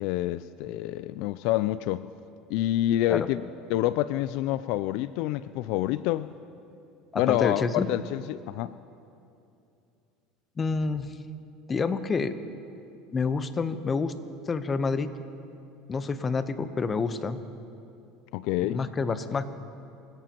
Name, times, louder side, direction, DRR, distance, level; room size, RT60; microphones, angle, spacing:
voice 1, 0.0-2.1 2.5-3.4 3.7-6.3 7.1-8.8 18.3-18.8, left 14 dB, 70° left, 15 dB, 0.3 m, -27 dB
voice 2, 7.1-7.9 10.6-11.1 11.7-12.4 13.1-14.1 14.5-15.1 15.9-17.4 18.6-19.5, left 4 dB, 25° left, 11 dB, 0.9 m, -28 dB
25.5 x 16.5 x 3.0 m, 2.6 s
supercardioid pair, 115°, 0 cm